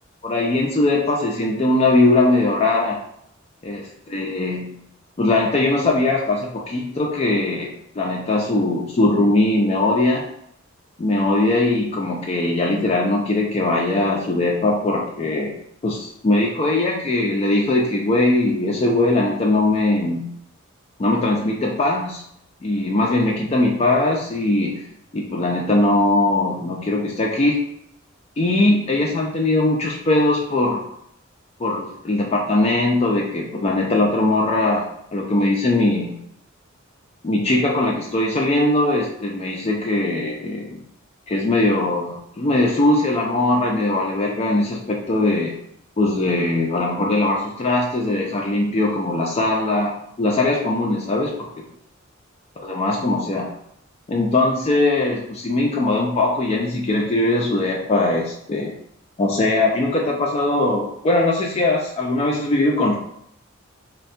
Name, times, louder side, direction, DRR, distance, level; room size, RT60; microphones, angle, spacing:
voice 1, 0.2-3.0 3.6-4.8 5.2-10.3 11.0-15.6 15.8-20.3 21.0-22.2 22.6-24.9 25.1-27.6 28.4-30.8 31.6-36.2 37.2-40.8 41.3-45.5 46.0-51.6 52.6-53.5 54.1-58.7 59.2-63.0, left 2 dB, 30° left, -1 dB, 0.3 m, -20 dB
3.2 x 2.2 x 2.6 m, 0.73 s
head